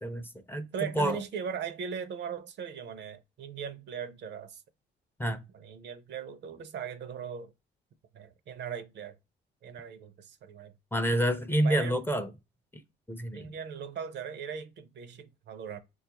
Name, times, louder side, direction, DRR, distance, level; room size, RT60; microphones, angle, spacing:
voice 1, 0.0-1.2 5.2-5.4 10.9-12.3 13.1-13.5, right 1 dB, 10° left, 0.4 m, -28 dB
voice 2, 0.7-4.6 5.5-7.5 8.1-9.2 9.6-10.7 11.6-12.0 13.3-15.8, right 7 dB, 60° right, 0.5 m, -39 dB
4.3 x 2.3 x 2.8 m
cardioid pair, 90°, 20 cm